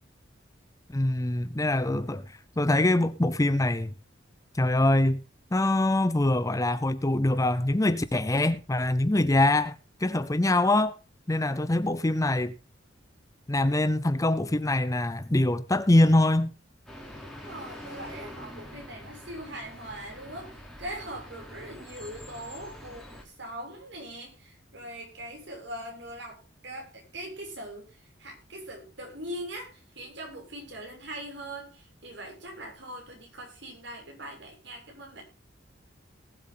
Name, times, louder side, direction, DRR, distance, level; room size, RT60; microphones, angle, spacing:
voice 1, 0.9-2.2 2.6-3.9 4.5-5.2 5.5-9.8 10.0-11.0 11.3-12.5 13.5-16.5, left 1 dB, 15° left, 0.6 m, -24 dB
sound 1, 16.9-23.2, left 1 dB, ahead, 3.3 m, -45 dB
voice 2, 17.4-35.2, right 1 dB, 65° right, 6.6 m, -41 dB
19.0 x 8.0 x 3.8 m
head